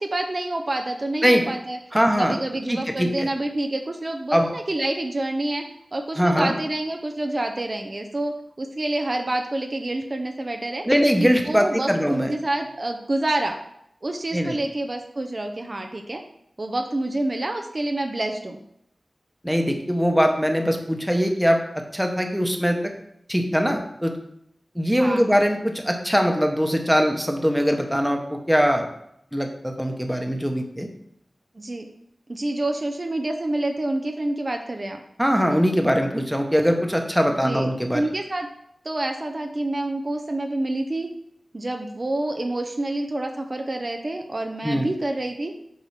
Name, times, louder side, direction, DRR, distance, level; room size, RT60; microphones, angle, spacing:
voice 1, 0.0-1.8 2.2-5.6 5.9-10.8 11.2-13.6 14.0-16.2 16.6-18.6 24.9-25.4 31.6-31.9 32.3-35.0 37.4-37.7 37.9-38.5 38.8-41.1 41.5-45.5, right 1 dB, 50° right, 4 dB, 0.6 m, -27 dB
voice 2, 1.9-2.4 2.7-3.3 4.3-4.5 6.2-6.5 10.8-12.3 14.3-14.6 19.4-22.9 23.3-24.1 24.7-28.9 29.3-30.9 35.2-38.0 44.6-44.9, equal, 5° right, 3 dB, 1.1 m, -21 dB
7.4 x 2.9 x 5.7 m, 0.75 s
cardioid pair, 40°, 0 cm